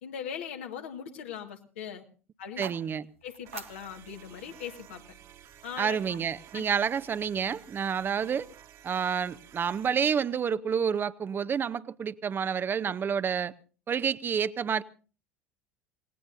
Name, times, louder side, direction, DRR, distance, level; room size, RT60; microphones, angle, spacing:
voice 1, 0.0-2.0 2.4-2.6 3.2-5.0 5.6-6.2 6.5-6.6, left 8 dB, 70° left, 1.8 m, -40 dB
sound 1, 2.4-6.5, right 8 dB, 80° right, 1.1 m, -49 dB
voice 2, 2.6-3.1 5.8-8.5 8.8-13.5 13.9-14.8, right 7 dB, 30° right, 0.7 m, -29 dB
sound 2, 3.5-10.0, right 10 dB, 50° right, 1.6 m, -53 dB
28.0 x 18.0 x 2.7 m
figure-of-eight pair, 70°, 7 cm